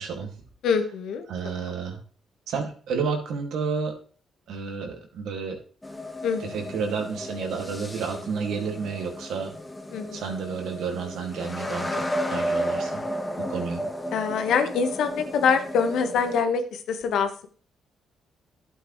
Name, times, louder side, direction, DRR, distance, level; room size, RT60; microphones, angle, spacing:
voice 1, 0.0-0.4 1.3-2.0 2.5-4.0 4.5-5.6 6.4-9.5 10.1-13.0 13.4-13.8, right 5 dB, 75° right, 3 dB, 2.3 m, -31 dB
voice 2, 0.6-1.3 1.6-1.7 6.2-6.5 9.9-10.2 14.1-17.5, left 6 dB, 75° left, 7 dB, 1.4 m, -25 dB
sound 1, 5.8-16.4, equal, 15° left, 1.4 m, -33 dB
12.0 x 8.0 x 3.2 m, 0.41 s
cardioid pair, 90°, 0 cm